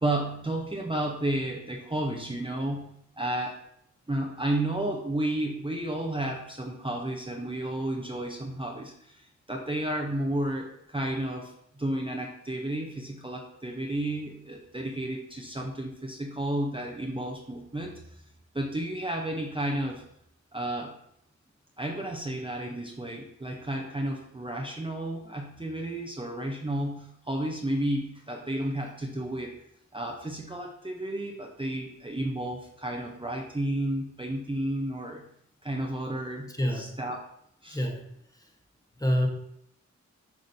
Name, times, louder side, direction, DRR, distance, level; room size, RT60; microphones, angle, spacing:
voice 1, 0.0-3.6 4.1-18.2 18.5-20.0 20.5-21.0 21.8-29.6 29.9-35.3 35.6-36.5 36.7-37.2 37.6-37.8, right 1 dB, 15° right, 0 dB, 0.8 m, -32 dB
voice 2, 36.5-37.0 37.7-38.5 39.0-39.3, equal, 10° left, 1 dB, 1.2 m, -28 dB
7.6 x 5.0 x 2.8 m, 0.74 s
cardioid pair, 45°, 30 cm